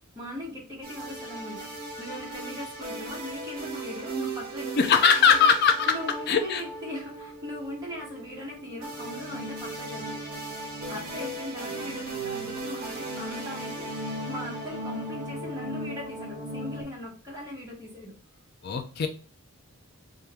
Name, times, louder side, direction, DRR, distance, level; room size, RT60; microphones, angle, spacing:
voice 1, 0.1-5.0 5.3-5.4 5.9-10.2 10.9-13.9 14.3-18.1, left 1 dB, 15° right, -4 dB, 1.5 m, -39 dB
sound 1, 0.8-16.8, right 2 dB, 40° right, 1.5 m, -37 dB
voice 2, 4.8-5.9 6.3-6.6 18.6-19.1, left 6 dB, 45° left, 5 dB, 0.4 m, -20 dB
4.4 x 2.6 x 3.5 m, 0.37 s
head